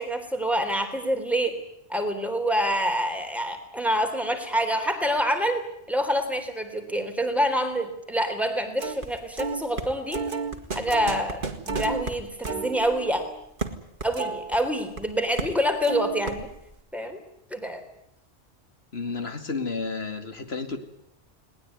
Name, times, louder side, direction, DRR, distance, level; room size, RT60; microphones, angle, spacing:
voice 1, 0.0-1.6 1.9-10.2 10.7-11.4 11.7-13.2 14.0-16.5 16.9-17.2 17.5-17.8, equal, ahead, 6 dB, 3.5 m, -26 dB
sound 1, 8.8-9.1 9.4-15.0 15.4-15.6 15.8-16.7, right 4 dB, 50° right, 2.2 m, -32 dB
voice 2, 18.9-20.8, left 4 dB, 70° left, 8 dB, 2.5 m, -31 dB
20.5 x 19.0 x 9.5 m, 0.79 s
omnidirectional pair, 1.1 m